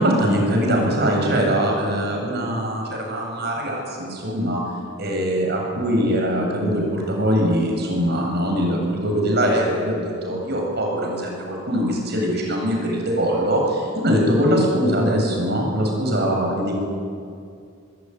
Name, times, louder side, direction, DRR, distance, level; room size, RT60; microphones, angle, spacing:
voice 1, 0.0-4.6 5.0-13.8 14.0-16.7, equal, 55° right, 1 dB, 7.8 m, -22 dB
24.5 x 22.0 x 9.6 m, 2.3 s
head